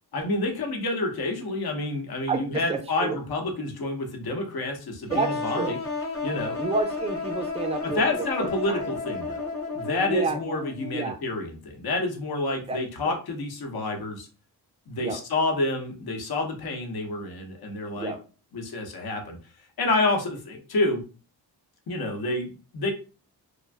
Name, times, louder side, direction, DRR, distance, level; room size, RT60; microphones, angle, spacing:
voice 1, 0.1-5.8 6.2-6.6 7.8-14.3 14.9-18.1 18.5-19.4 19.8-21.0 21.9-22.9, left 2 dB, 60° left, 2 dB, 0.9 m, -28 dB
voice 2, 2.3-3.2 5.1-5.8 6.6-8.9 10.1-10.4 10.9-11.2 12.7-13.2 15.0-15.2 18.0-18.2, right 4 dB, 15° right, 6 dB, 0.5 m, -30 dB
sound 1, 5.1-10.9, left 4 dB, 30° left, 0.9 m, -32 dB
2.5 x 2.2 x 3.3 m, 0.35 s
cardioid pair, 65°, 43 cm